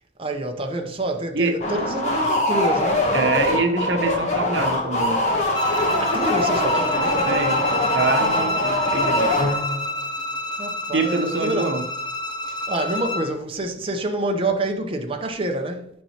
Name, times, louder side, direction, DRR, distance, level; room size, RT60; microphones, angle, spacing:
voice 1, 0.2-3.1 6.0-7.3 10.5-11.8 12.5-15.9, right 1 dB, 30° right, 0.8 m, -27 dB
sound 1, 1.6-9.9, left 1 dB, 40° left, 1.3 m, -23 dB
voice 2, 3.1-5.2 7.2-9.3 10.9-11.8, right 3 dB, 75° right, 0.9 m, -25 dB
Bowed string instrument, 5.5-13.3, left 1 dB, 20° left, 0.6 m, -28 dB
8.7 x 5.5 x 2.9 m
head